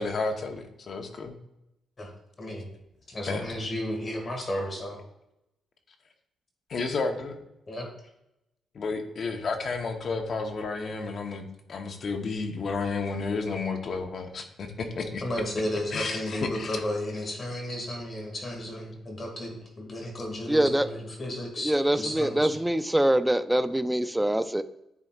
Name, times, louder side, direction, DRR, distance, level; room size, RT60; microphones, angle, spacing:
voice 1, 0.0-1.3 3.2-3.5 6.7-7.4 8.7-14.7 14.9-15.2 15.9-16.8, left 4 dB, 50° left, 5 dB, 0.9 m, -31 dB
voice 2, 3.1-5.0 7.7-7.9 15.2-22.5, left 1 dB, 35° left, 0 dB, 1.9 m, -33 dB
voice 3, 20.5-20.9 21.6-24.6, right 1 dB, 5° right, 12 dB, 0.3 m, -24 dB
9.7 x 4.1 x 2.4 m, 0.87 s
cardioid pair, 115°, 0 cm